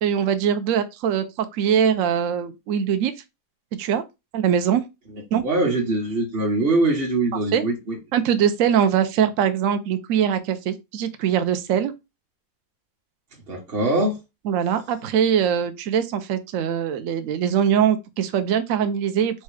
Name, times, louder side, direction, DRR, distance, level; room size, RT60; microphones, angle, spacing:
voice 1, 0.0-3.1 3.8-4.0 4.3-4.8 5.3-5.4 7.5-7.6 8.1-11.9 14.5-19.4, right 8 dB, 65° right, 0.9 m, -22 dB
voice 2, 5.4-8.0 13.5-14.2, right 2 dB, 40° right, 1.4 m, -22 dB
4.2 x 2.4 x 4.7 m
omnidirectional pair, 1.7 m